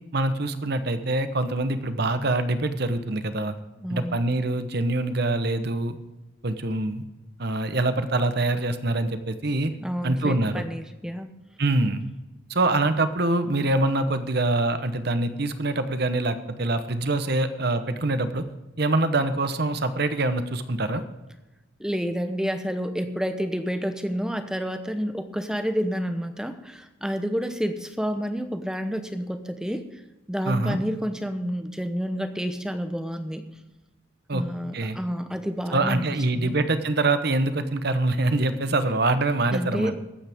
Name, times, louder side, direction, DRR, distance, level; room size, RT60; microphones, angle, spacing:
voice 1, 0.1-3.6 3.9-6.0 6.4-7.0 7.4-9.7 10.0-10.7 11.6-12.0 12.5-18.4 18.8-21.0 30.5-30.8 34.3-34.4 34.7-35.0 35.7-39.9, right 2 dB, 55° right, 10 dB, 1.0 m, -24 dB
voice 2, 3.8-4.2 9.8-11.3 21.8-29.9 30.3-33.4 34.3-36.0 36.3-36.6 39.5-40.0, equal, 5° right, 8 dB, 0.8 m, -29 dB
21.5 x 8.8 x 3.6 m, 1.1 s
head